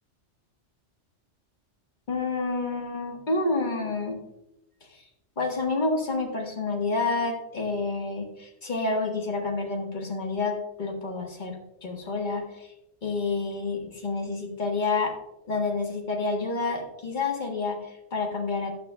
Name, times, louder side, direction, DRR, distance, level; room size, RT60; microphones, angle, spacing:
voice 1, 2.1-4.2 4.8-5.0 5.4-12.7 13.0-15.1 15.4-18.7, left 3 dB, 40° left, 1 dB, 1.6 m, -29 dB
13.0 x 8.1 x 2.3 m, 0.88 s
omnidirectional pair, 1.2 m